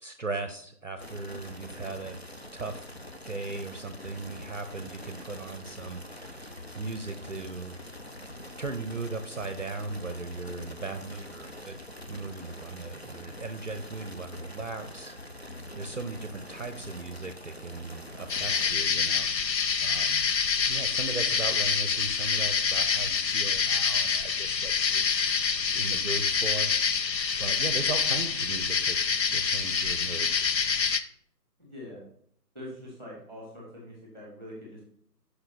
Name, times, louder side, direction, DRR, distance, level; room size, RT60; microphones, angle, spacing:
voice 1, 0.0-2.2 2.5-2.8 3.3-7.8 8.6-11.8 12.1-15.5 15.7-20.3 20.7-25.1 25.7-29.0 29.3-30.3, right 3 dB, 50° right, 8 dB, 0.6 m, -38 dB
sound 1, 1.0-18.7, left 1 dB, 45° left, 0.4 m, -44 dB
sound 2, 18.3-31.0, left 6 dB, 90° left, 0.7 m, -26 dB
voice 2, 31.6-32.1 32.5-34.8, left 1 dB, 10° left, -4 dB, 1.7 m, -43 dB
5.7 x 5.6 x 4.0 m, 0.63 s
figure-of-eight pair, 155°, 49 cm